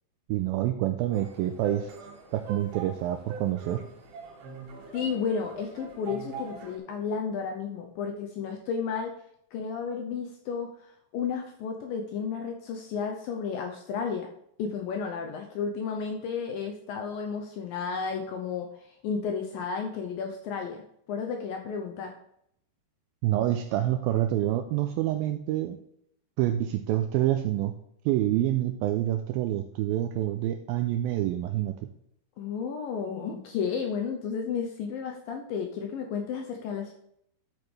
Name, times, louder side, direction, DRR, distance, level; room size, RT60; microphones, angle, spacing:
voice 1, 0.3-1.9 2.3-3.8 23.2-25.8 26.4-27.8 28.1-31.8, right 13 dB, 90° right, 7 dB, 2.1 m, -27 dB
sound 1, 1.1-6.8, right 4 dB, 70° right, 3.6 m, -43 dB
voice 2, 4.9-9.1 9.5-10.7 11.1-14.3 14.6-22.1 32.4-36.9, left 6 dB, 75° left, 3 dB, 2.2 m, -32 dB
11.5 x 8.4 x 3.3 m, 0.72 s
omnidirectional pair, 4.8 m